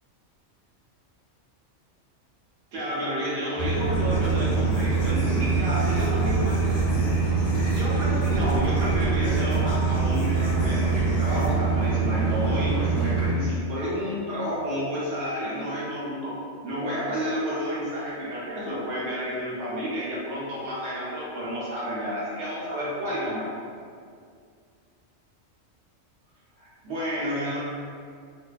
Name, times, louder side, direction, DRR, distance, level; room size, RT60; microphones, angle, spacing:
voice 1, 2.7-6.6 7.7-16.3 16.6-23.5 26.6-27.6, equal, 90° right, -7 dB, 1.1 m, -30 dB
sound 1, 3.6-13.3, right 4 dB, 10° right, 0.8 m, -24 dB
sound 2, 3.8-11.5, equal, 90° left, 1.0 m, -36 dB
2.6 x 2.2 x 2.3 m, 2.2 s
omnidirectional pair, 1.3 m